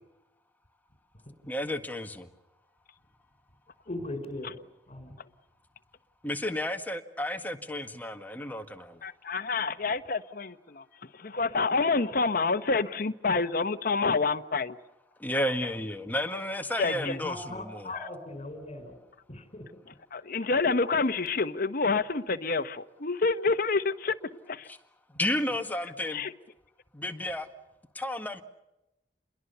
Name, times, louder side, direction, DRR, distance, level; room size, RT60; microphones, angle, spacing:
voice 1, 1.5-2.3 6.2-9.0 15.2-17.9 24.7-24.8 25.2-26.2 26.9-27.5 28.0-28.4, left 1 dB, 10° left, 6 dB, 1.8 m, -32 dB
voice 2, 3.8-4.6 4.9-5.1 16.9-19.0 19.3-19.7, left 2 dB, 40° left, 8 dB, 5.1 m, -39 dB
voice 3, 9.0-14.8 16.8-17.2 20.1-24.2 24.5-24.7 26.1-26.3, left 4 dB, 55° left, 10 dB, 1.2 m, -28 dB
29.0 x 22.0 x 6.9 m, 0.93 s
head